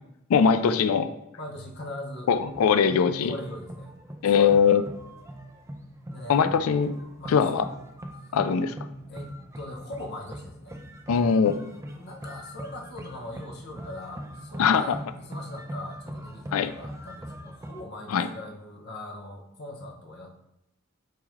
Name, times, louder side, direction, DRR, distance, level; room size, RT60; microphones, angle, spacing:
voice 1, 0.3-1.1 2.3-3.3 4.2-4.8 6.3-6.9 7.3-7.7 8.3-8.7 11.1-11.6 14.6-15.0 16.5-16.7 18.1-18.3, left 6 dB, 85° left, 11 dB, 0.4 m, -21 dB
voice 2, 1.4-2.3 3.3-3.9 4.3-4.8 6.1-6.9 7.2-7.6 9.1-10.8 11.8-20.3, left 1 dB, 50° left, 0 dB, 0.9 m, -40 dB
sound 1, 2.4-17.8, equal, 15° right, 0.4 m, -42 dB
4.7 x 3.6 x 3.2 m, 0.85 s
head